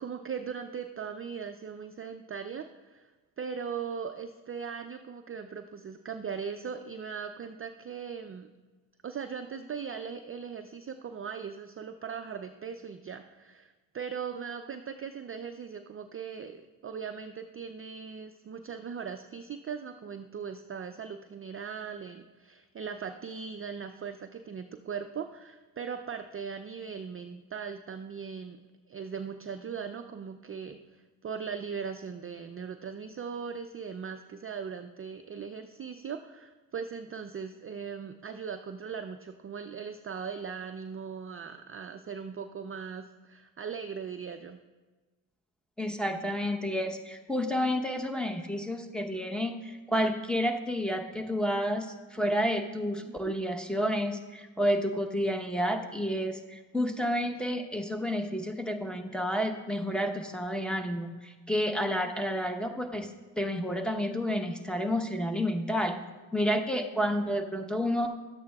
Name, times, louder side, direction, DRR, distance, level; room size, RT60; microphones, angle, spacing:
voice 1, 0.0-3.1 3.4-8.5 9.0-28.6 28.9-44.6 53.0-53.4, right 6 dB, 30° right, 7 dB, 0.4 m, -39 dB
voice 2, 45.8-63.1 63.4-66.0 66.3-68.1, equal, ahead, 2 dB, 0.9 m, -30 dB
12.0 x 8.4 x 2.3 m, 1.3 s
supercardioid pair, 60°, 46 cm